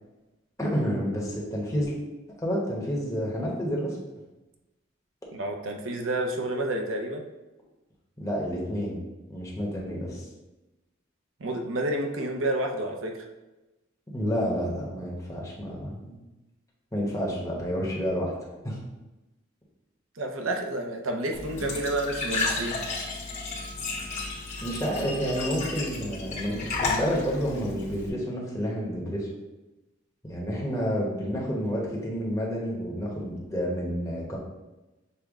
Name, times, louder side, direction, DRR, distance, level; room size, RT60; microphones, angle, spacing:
voice 1, 0.6-1.9 2.4-4.0 8.2-9.0 9.3-10.2 14.1-16.2 16.9-18.3 18.6-18.8 24.6-29.3 30.3-34.4, equal, 15° left, -4 dB, 1.0 m, -29 dB
voice 2, 5.3-7.3 11.4-13.3 20.2-22.8, right 1 dB, 90° right, 3 dB, 0.7 m, -30 dB
Glass / Trickle dribble / Fill (with liquid), 21.3-28.1, left 3 dB, 35° left, 1.1 m, -33 dB
6.7 x 2.2 x 3.6 m, 1.0 s
head